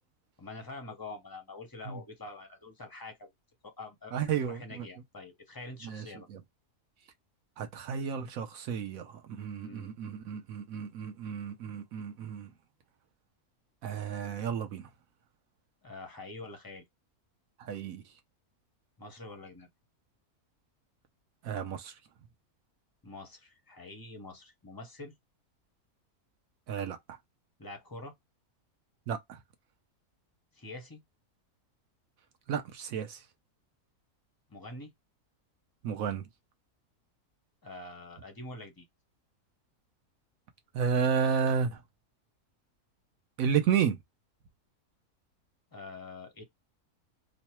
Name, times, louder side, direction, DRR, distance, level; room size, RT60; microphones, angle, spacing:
voice 1, 0.4-3.3 3.6-6.3 9.6-9.9 15.8-16.8 19.0-19.7 23.0-25.1 27.6-28.1 30.5-31.0 34.5-34.9 37.6-38.9 45.7-46.4, left 2 dB, 25° left, 0.5 m, -45 dB
voice 2, 4.1-4.9 5.8-6.0 6.3-6.4 7.6-12.5 13.8-14.9 17.6-18.0 21.4-21.9 26.7-27.0 29.1-29.4 32.5-33.2 35.8-36.2 40.7-41.8 43.4-44.0, right 7 dB, 70° right, 1.1 m, -32 dB
3.2 x 2.2 x 4.3 m
omnidirectional pair, 1.6 m